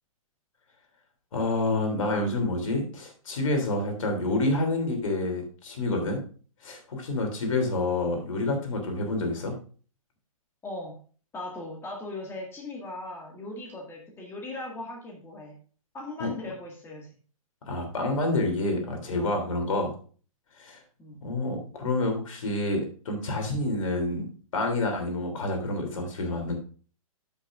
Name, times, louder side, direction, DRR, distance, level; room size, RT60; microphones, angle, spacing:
voice 1, 1.3-6.2 6.6-9.5 16.2-16.3 17.6-20.0 20.6-20.8 21.2-24.3 24.5-26.5, left 2 dB, 60° left, 3 dB, 3.1 m, -28 dB
voice 2, 10.6-11.0 11.3-15.6 15.9-17.1 19.1-19.4 21.0-21.2, left 2 dB, 15° left, -1 dB, 2.0 m, -39 dB
13.5 x 6.0 x 2.5 m, 0.40 s
figure-of-eight pair, 120°, 18 cm